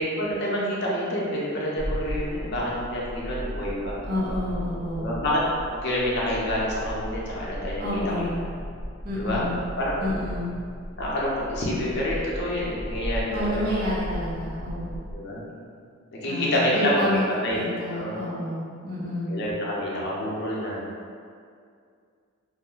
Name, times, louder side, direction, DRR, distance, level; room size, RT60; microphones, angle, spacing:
voice 1, 0.0-4.0 5.0-5.4 5.7-8.3 9.2-9.4 9.8-10.1 11.0-13.7 15.1-15.4 16.1-17.6 17.9-18.2 19.3-20.9, left 1 dB, 55° left, -5 dB, 0.6 m, -27 dB
sound 1, 1.8-15.2, equal, 15° right, 0.7 m, -36 dB
voice 2, 4.0-5.2 7.8-8.4 9.0-9.6 10.0-10.6 13.3-15.0 16.2-17.2 17.5-19.4, left 1 dB, 50° right, -7 dB, 0.6 m, -29 dB
2.4 x 2.1 x 3.6 m, 2.3 s
head